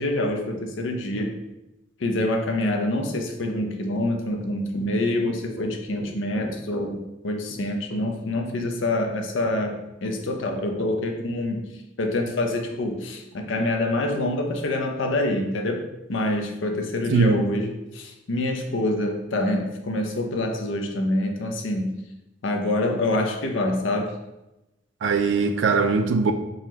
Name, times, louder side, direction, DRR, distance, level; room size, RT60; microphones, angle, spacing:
voice 1, 0.0-1.3 2.0-11.7 12.0-15.8 16.1-22.0 22.4-24.1, left 1 dB, 75° left, 3 dB, 0.6 m, -26 dB
voice 2, 17.1-17.4 25.0-26.3, right 4 dB, 70° right, 7 dB, 0.4 m, -20 dB
3.9 x 3.0 x 2.8 m, 0.95 s
head